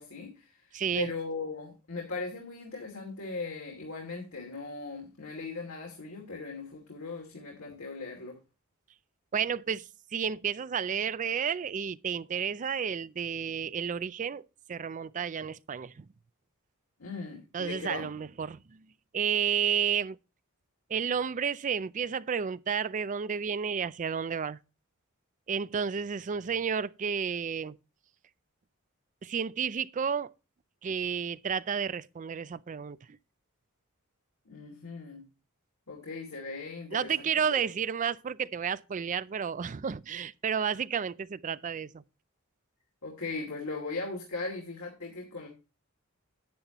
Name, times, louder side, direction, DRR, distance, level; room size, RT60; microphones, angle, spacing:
voice 1, 0.0-0.7 0.9-8.4 17.0-18.1 34.5-35.2 35.9-37.7 43.0-45.5, left 3 dB, 75° left, 2.6 m, -38 dB
voice 2, 0.7-1.1 9.3-16.0 17.5-18.8 19.1-20.2 20.9-24.6 25.5-27.8 29.2-30.3 30.8-33.2 36.9-42.0, right 7 dB, 35° right, 0.4 m, -31 dB
10.5 x 9.7 x 3.0 m
head